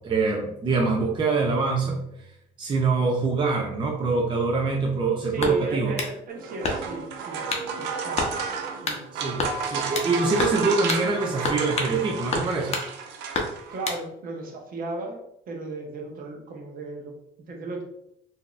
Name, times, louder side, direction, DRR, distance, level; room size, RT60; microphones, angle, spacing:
voice 1, 0.0-2.0 2.6-5.9 9.2-12.8, right 4 dB, 30° right, 1 dB, 0.5 m, -24 dB
voice 2, 5.2-8.3 8.8-9.1 13.7-17.1 17.5-17.8, right 2 dB, 55° right, 2 dB, 0.8 m, -36 dB
sound 1, 5.4-6.1 6.6-7.0 7.5-7.7 8.2-8.3 8.8-9.0 9.4-10.1 10.4-10.6 10.9-11.0 11.4-12.0 12.3-12.9 13.3-14.0, left 3 dB, 40° left, 0.7 m, -29 dB
sound 2, 6.3-13.9, right 6 dB, 90° right, 0.5 m, -32 dB
3.8 x 2.7 x 2.3 m, 0.77 s
cardioid pair, 110°, 17 cm